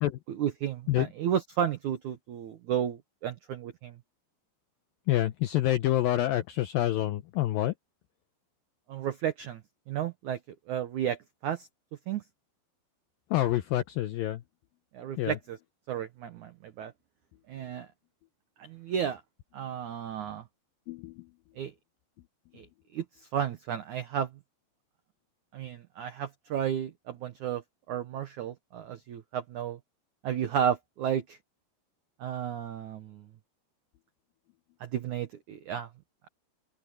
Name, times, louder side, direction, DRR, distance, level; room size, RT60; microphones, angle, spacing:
voice 1, 0.3-4.0 8.9-9.6 9.9-10.4 10.7-11.7 12.1-12.2 14.9-15.6 15.9-16.9 17.5-17.9 18.6-19.2 19.5-20.4 21.6-21.7 22.5-22.6 22.9-23.0 23.3-24.3 25.5-27.6 27.9-29.8 30.2-31.4 32.2-33.3 34.8-35.9, right 9 dB, 85° right, 1.7 m, -32 dB
voice 2, 5.1-7.7 13.3-14.4 15.2-15.4 20.9-21.3, left 14 dB, 85° left, 2.0 m, -27 dB
open air
omnidirectional pair, 5.1 m